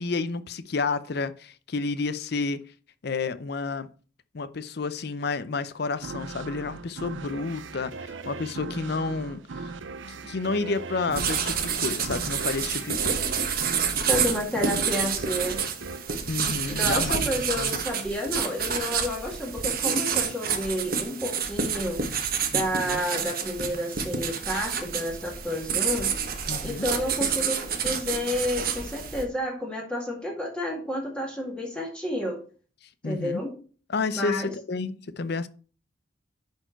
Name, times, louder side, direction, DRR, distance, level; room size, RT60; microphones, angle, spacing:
voice 1, 0.0-2.6 3.0-3.9 4.3-9.7 10.2-13.2 16.3-17.8 22.5-23.0 26.5-26.9 33.0-33.4 33.9-35.5, left 4 dB, 60° left, 0.6 m, -30 dB
sound 1, 6.0-17.2, right 4 dB, 90° right, 0.6 m, -39 dB
sound 2, 11.1-29.2, right 7 dB, 50° right, 1.1 m, -29 dB
voice 2, 14.1-15.6 16.7-22.3 22.5-26.1 26.6-32.4 33.0-33.6 34.2-34.5, left 1 dB, 5° left, 2.0 m, -30 dB
10.5 x 4.5 x 4.5 m
head